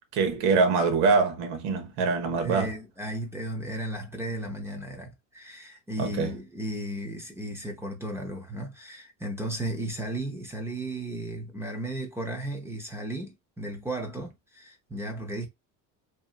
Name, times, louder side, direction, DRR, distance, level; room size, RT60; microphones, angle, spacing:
voice 1, 0.1-2.7 6.0-6.3, right 4 dB, 80° right, 1.1 m, -24 dB
voice 2, 2.4-15.5, right 1 dB, 5° right, 0.5 m, -35 dB
2.8 x 2.6 x 2.4 m
cardioid pair, 130°, 38 cm